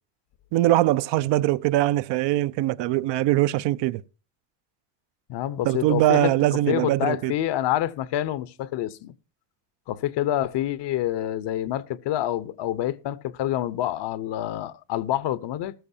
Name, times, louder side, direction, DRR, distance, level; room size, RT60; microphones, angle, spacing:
voice 1, 0.5-4.0 5.6-7.3, right 15 dB, 60° right, 0.6 m, -22 dB
voice 2, 5.3-6.3 6.7-9.1 9.9-15.7, left 12 dB, 60° left, 0.9 m, -27 dB
14.0 x 13.5 x 2.7 m
cardioid pair, 110°, 48 cm